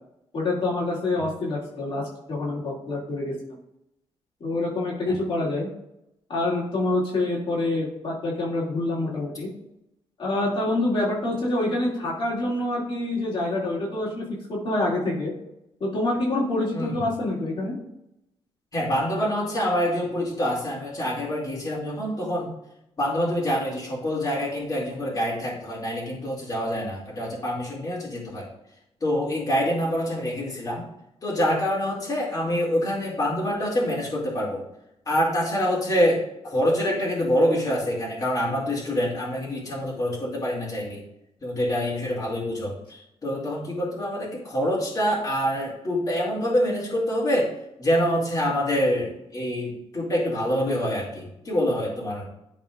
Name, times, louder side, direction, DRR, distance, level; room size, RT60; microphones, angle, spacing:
voice 1, 0.3-3.4 4.4-5.7 6.3-9.5 10.2-15.3 15.8-17.7, left 2 dB, 55° left, -6 dB, 2.4 m, -26 dB
voice 2, 18.7-22.5 23.0-28.5 29.0-30.8 31.2-34.6 35.1-41.0 41.4-47.5 47.8-52.3, equal, 35° left, -6 dB, 2.4 m, -26 dB
12.0 x 4.1 x 2.5 m, 0.82 s
cardioid pair, 120°, 11 cm